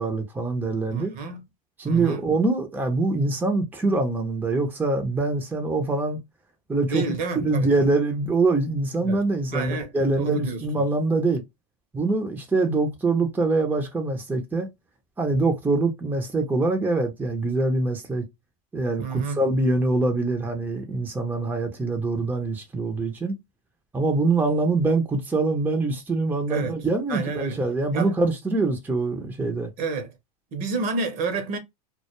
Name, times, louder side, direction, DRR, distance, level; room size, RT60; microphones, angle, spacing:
voice 1, 0.0-1.1 1.8-6.2 6.7-7.0 7.4-11.4 11.9-14.7 15.2-18.3 18.7-23.4 23.9-29.7, right 3 dB, 10° right, 0.6 m, -24 dB
voice 2, 0.9-1.4 1.8-2.2 6.9-7.7 9.0-9.2 9.5-10.6 19.0-19.4 26.5-26.8 27.1-27.6 27.9-28.1 29.8-30.1 30.5-31.6, right 4 dB, 50° right, 0.8 m, -29 dB
2.2 x 2.0 x 2.9 m
hypercardioid pair, 100°, 19 cm